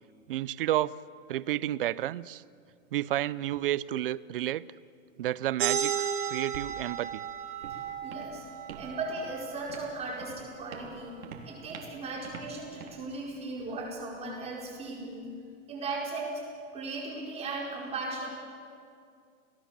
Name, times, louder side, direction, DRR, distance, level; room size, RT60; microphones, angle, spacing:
voice 1, 0.3-1.0 1.3-2.4 2.9-4.6 5.2-7.2, right 13 dB, 40° right, 20 dB, 0.5 m, -31 dB
sound 1, 5.6-10.8, right 8 dB, 60° right, 3.2 m, -35 dB
Walk footsteps, 6.9-14.9, right 5 dB, 85° right, 4.0 m, -49 dB
voice 2, 7.7-8.4 8.7-11.1 11.4-15.3 15.7-16.4 16.7-18.3, right 3 dB, 15° right, -2 dB, 5.0 m, -37 dB
29.5 x 18.5 x 7.3 m, 2.3 s
supercardioid pair, 165°, 42 cm